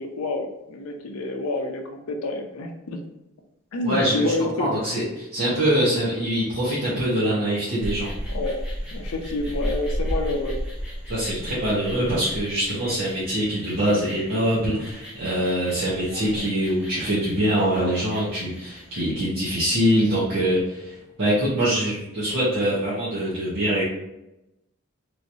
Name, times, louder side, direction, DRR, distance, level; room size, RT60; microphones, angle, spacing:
voice 1, 0.0-3.0 3.7-4.7 8.3-8.5 8.9-10.6 16.3-16.4, left 2 dB, 80° left, 4 dB, 0.5 m, -28 dB
voice 2, 3.8-4.3 4.6-8.1 11.1-23.8, equal, 55° right, -10 dB, 1.0 m, -24 dB
sound 1, 7.8-19.1, equal, 5° right, 0.8 m, -34 dB
3.1 x 2.9 x 2.6 m, 0.93 s
head